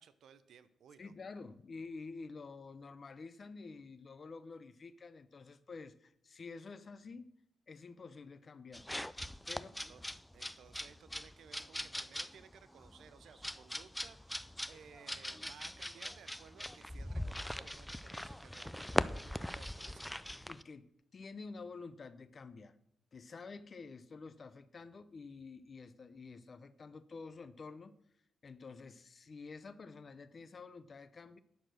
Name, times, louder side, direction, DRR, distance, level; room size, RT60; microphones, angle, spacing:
voice 1, 0.0-1.1 9.5-10.0 10.3-20.1, right 7 dB, 80° right, 14 dB, 0.7 m, -59 dB
voice 2, 1.0-7.3 7.7-8.9 9.5-9.7 20.5-20.9 21.1-22.7 23.1-28.0 28.4-31.4, left 4 dB, 40° left, 13 dB, 0.7 m, -49 dB
sound 1, 8.7-20.6, left 1 dB, 5° left, 0.3 m, -41 dB
10.0 x 6.5 x 6.2 m, 0.72 s
wide cardioid pair, 125°, 0 cm